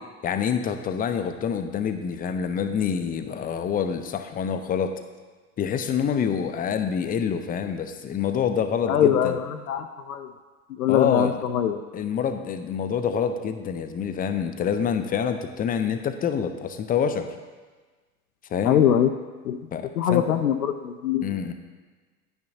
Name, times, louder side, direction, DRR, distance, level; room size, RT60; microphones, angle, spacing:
voice 1, 0.2-4.9 5.6-9.4 10.9-11.4 11.9-17.3 18.5-18.8 19.7-20.3 21.2-21.5, left 7 dB, 20° left, 8 dB, 0.5 m, -26 dB
voice 2, 8.9-10.3 10.8-11.8 18.6-19.1 19.4-19.6 20.0-21.2, left 9 dB, 75° left, 7 dB, 0.6 m, -22 dB
10.5 x 9.2 x 2.7 m, 1.4 s
figure-of-eight pair, 75°, 45 cm